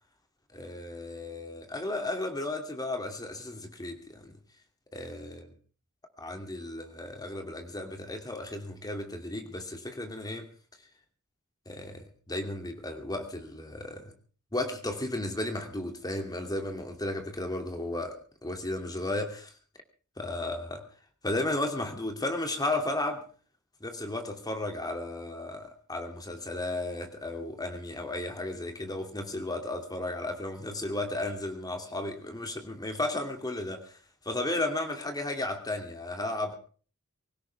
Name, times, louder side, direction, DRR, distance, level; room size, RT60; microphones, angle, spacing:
voice 1, 0.5-4.3 4.9-5.5 6.2-10.5 11.7-14.1 14.5-19.5 20.2-20.9 21.2-23.2 23.8-34.0 34.2-36.5, left 2 dB, 20° left, 5 dB, 2.7 m, -34 dB
24.5 x 16.5 x 3.5 m, 0.40 s
head